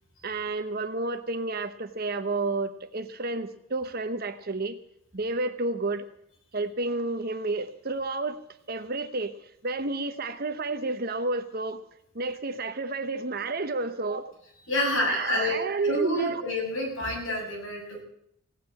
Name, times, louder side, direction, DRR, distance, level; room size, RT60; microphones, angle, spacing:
voice 1, 0.2-4.8 5.1-6.1 6.5-8.4 8.7-11.8 12.1-14.3 15.1-16.4, right 3 dB, 45° right, 9 dB, 1.0 m, -30 dB
voice 2, 14.7-18.0, left 1 dB, 75° left, -1 dB, 7.1 m, -28 dB
17.0 x 9.4 x 8.4 m, 0.72 s
head